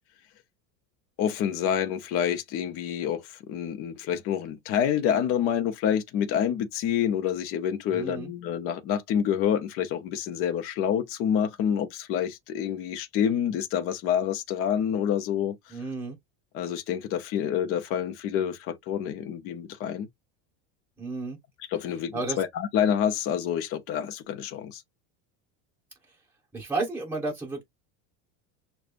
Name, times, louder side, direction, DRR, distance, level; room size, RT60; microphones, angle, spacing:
voice 1, 1.2-3.2 3.5-15.5 16.5-20.1 21.7-24.8, left 9 dB, 35° left, 0.7 m, -27 dB
voice 2, 7.9-8.3 15.7-16.2 21.0-21.4 22.1-22.4 26.5-27.6, right 3 dB, 5° right, 2.0 m, -32 dB
6.4 x 2.3 x 2.4 m
cardioid pair, 170°, 37 cm